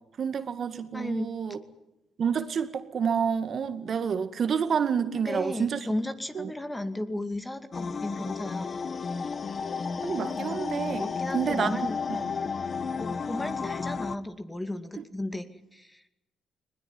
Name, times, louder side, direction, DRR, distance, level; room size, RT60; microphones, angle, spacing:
voice 1, 0.2-1.6 2.2-5.8 6.4-6.5 10.0-11.1 11.3-11.7, right 7 dB, 50° right, 2.0 m, -28 dB
voice 2, 0.9-1.3 5.3-8.7 11.0-12.4 13.0-15.4 15.7-16.0, left 1 dB, 10° left, 2.3 m, -35 dB
sound 1, 7.7-14.2, left 5 dB, 40° left, 1.2 m, -32 dB
21.0 x 20.5 x 9.8 m
cardioid pair, 90°, 0 cm